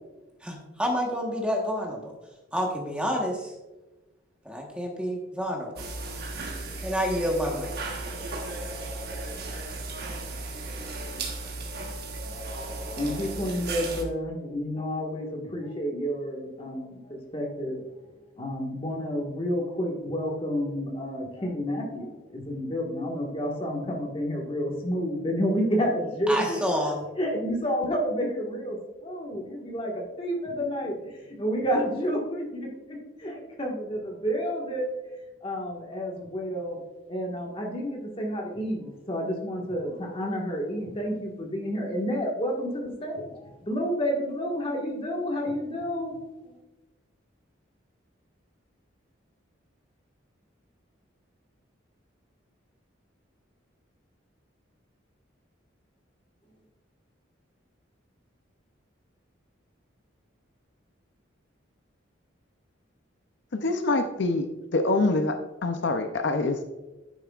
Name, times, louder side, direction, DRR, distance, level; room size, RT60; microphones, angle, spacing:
voice 1, 0.4-2.1 2.5-3.5 4.4-5.7 6.8-7.7 26.3-27.0, equal, 5° right, 0 dB, 1.2 m, -28 dB
sound 1, 5.8-14.0, right 2 dB, 50° right, 1.2 m, -35 dB
voice 2, 13.0-17.8 18.4-26.6 27.2-28.8 29.0-34.9 35.4-36.8 37.1-46.2 46.4-46.6, equal, 25° left, -1 dB, 1.6 m, -30 dB
voice 3, 63.5-66.6, left 2 dB, 65° left, 7 dB, 0.6 m, -25 dB
10.5 x 9.1 x 2.4 m, 1.1 s
head